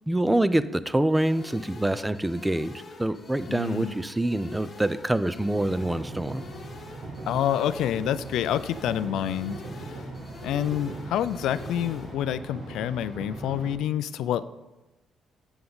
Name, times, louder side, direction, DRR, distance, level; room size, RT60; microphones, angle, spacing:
voice 1, 0.1-6.4, right 1 dB, 10° right, 14 dB, 0.4 m, -26 dB
sound 1, 1.1-12.1, left 3 dB, 45° left, 1.2 m, -46 dB
voice 2, 3.5-3.9 7.3-10.0 10.4-14.4, left 10 dB, 85° left, 14 dB, 0.3 m, -28 dB
sound 2, 5.5-13.7, right 2 dB, 75° right, 1.6 m, -40 dB
7.7 x 7.0 x 3.9 m, 1.0 s
cardioid pair, 90°, 0 cm